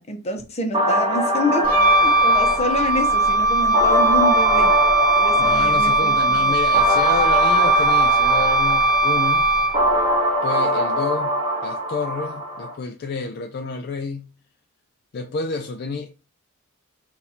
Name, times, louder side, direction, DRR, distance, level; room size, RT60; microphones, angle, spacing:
voice 1, 0.0-4.8 5.2-6.5, left 1 dB, 30° left, 0.8 m, -27 dB
sound 1, 0.7-12.7, equal, 25° right, 1.1 m, -23 dB
Wind instrument woodwind instrument, 1.6-10.0, right 2 dB, 40° right, 0.8 m, -19 dB
voice 2, 5.4-9.5 10.4-14.3 15.1-16.3, left 4 dB, 45° left, 0.3 m, -29 dB
4.1 x 2.6 x 4.2 m
head